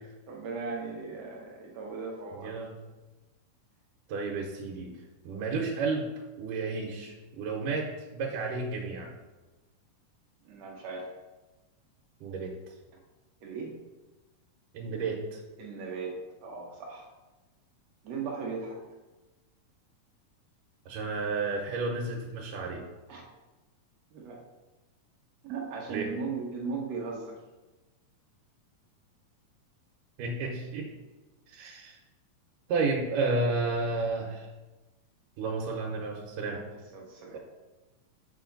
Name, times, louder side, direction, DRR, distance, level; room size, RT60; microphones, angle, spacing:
voice 1, 0.3-2.5 10.4-11.1 13.4-13.8 15.6-17.1 18.0-18.8 23.1-23.2 24.1-24.4 25.4-27.4 36.6-37.4, right 4 dB, 65° right, -1 dB, 1.9 m, -37 dB
voice 2, 2.4-2.7 4.1-4.9 5.2-6.1 6.4-9.1 12.2-12.5 14.7-15.4 20.9-22.8 25.9-26.1 30.2-30.9 31.5-32.0 32.7-34.5 35.4-36.6, right 3 dB, 85° right, -1 dB, 2.5 m, -31 dB
6.9 x 6.3 x 3.9 m, 1.2 s
omnidirectional pair, 3.7 m